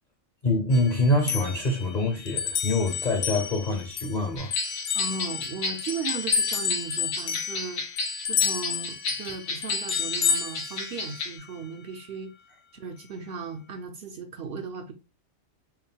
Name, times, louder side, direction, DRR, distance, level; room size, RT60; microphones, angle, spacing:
voice 1, 0.4-4.5, left 1 dB, 40° left, 0.7 m, -25 dB
sound 1, 0.7-4.2 4.5-11.4, left 7 dB, 70° left, 0.9 m, -30 dB
sound 2, 4.4-11.4, left 3 dB, 90° left, 1.5 m, -33 dB
voice 2, 4.9-7.8 8.3-12.3 12.7-14.9, right 5 dB, 60° right, 0.7 m, -36 dB
4.6 x 2.1 x 3.4 m
omnidirectional pair, 1.4 m